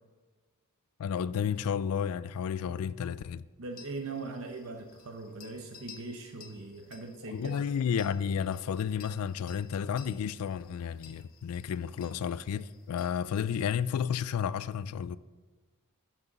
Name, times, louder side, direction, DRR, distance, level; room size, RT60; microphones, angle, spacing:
voice 1, 1.0-3.4 7.3-15.2, left 7 dB, 75° left, 0.3 m, -32 dB
voice 2, 3.6-7.6, right 3 dB, 65° right, 0.8 m, -40 dB
sound 1, 3.7-13.7, left 8 dB, 40° left, 0.8 m, -56 dB
12.5 x 6.0 x 4.0 m
head